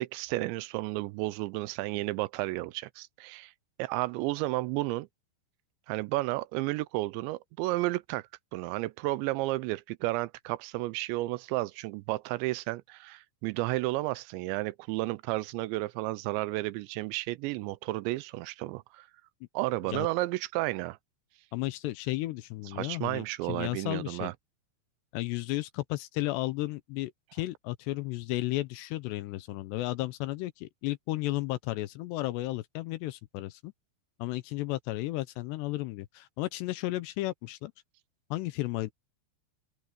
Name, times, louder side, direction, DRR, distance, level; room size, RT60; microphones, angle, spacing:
voice 1, 0.0-3.5 3.8-5.1 5.9-19.1 19.5-21.0 22.8-24.3, right 19 dB, 85° right, 2.8 m, -32 dB
voice 2, 21.5-24.3 25.1-33.7 34.2-37.7 38.3-38.9, left 18 dB, 80° left, 2.6 m, -33 dB
open air
omnidirectional pair, 5.3 m